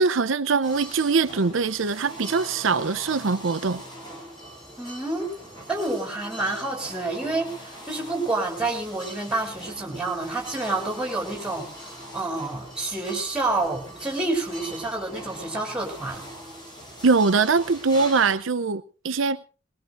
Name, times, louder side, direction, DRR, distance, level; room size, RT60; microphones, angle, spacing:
voice 1, 0.0-3.8 17.0-19.4, right 4 dB, 75° right, 0.7 m, -22 dB
sound 1, 0.6-18.4, equal, 20° left, 5.7 m, -41 dB
voice 2, 4.8-5.3 5.7-16.3, right 2 dB, 5° right, 4.4 m, -28 dB
21.5 x 21.0 x 2.6 m
head